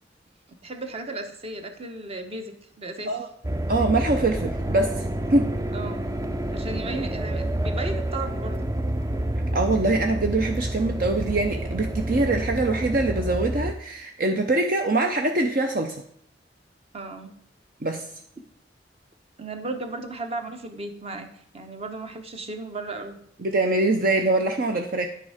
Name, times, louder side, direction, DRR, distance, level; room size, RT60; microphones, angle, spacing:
voice 1, 0.5-3.2 5.7-6.0 6.5-8.7 16.9-17.3 19.4-21.3 21.5-23.2, right 2 dB, 35° right, 6 dB, 1.1 m, -35 dB
sound 1, 3.4-13.7, right 1 dB, 20° right, 0.5 m, -28 dB
voice 2, 3.7-5.0 5.3-5.5 9.5-16.0 17.8-18.0 23.4-25.1, right 2 dB, 55° right, 4 dB, 0.7 m, -23 dB
10.0 x 6.9 x 5.0 m, 0.66 s
head